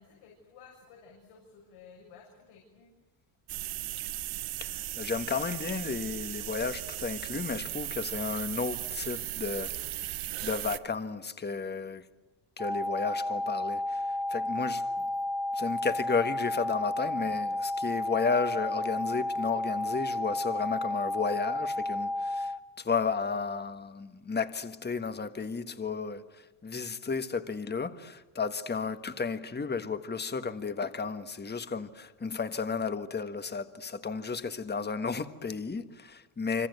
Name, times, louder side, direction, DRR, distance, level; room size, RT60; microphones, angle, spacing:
voice 1, 0.0-2.9, left 5 dB, 90° left, 6.9 m, -54 dB
sound 1, 3.5-10.8, right 15 dB, 75° right, 1.2 m, -37 dB
voice 2, 4.6-9.7 10.4-12.0 12.6-14.8 15.5-36.7, left 5 dB, 20° left, 1.6 m, -33 dB
sound 2, 12.6-22.6, left 1 dB, ahead, 0.9 m, -32 dB
26.5 x 26.0 x 8.2 m
cardioid pair, 105°, 49 cm